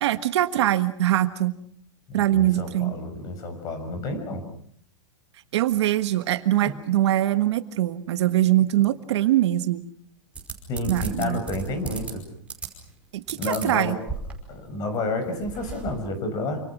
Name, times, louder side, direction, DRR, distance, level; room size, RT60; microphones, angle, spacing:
voice 1, 0.0-1.5 2.1-2.9 5.5-9.9 10.9-11.4 13.1-14.0, right 13 dB, 60° right, 10 dB, 1.5 m, -22 dB
voice 2, 2.1-4.4 6.6-6.7 10.7-12.2 13.3-14.0 14.5-16.6, left 2 dB, 25° left, 8 dB, 6.1 m, -30 dB
sound 1, 10.3-12.1 12.5-12.9 13.3-14.6 14.9-15.0 15.2-15.9, right 5 dB, 10° right, 5.3 m, -34 dB
28.5 x 27.0 x 6.1 m, 0.64 s
supercardioid pair, 170°, 16 cm